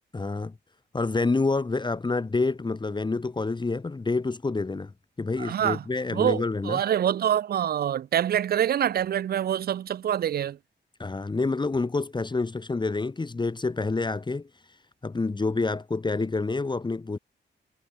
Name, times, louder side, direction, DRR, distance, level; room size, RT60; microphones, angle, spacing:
voice 1, 0.1-0.5 0.9-4.9 5.2-6.8 11.0-14.5 15.0-17.2, left 3 dB, 25° left, 1.7 m, -28 dB
voice 2, 5.4-5.8 6.1-10.6, right 10 dB, 55° right, 0.4 m, -25 dB
wide cardioid pair, 135°, 19 cm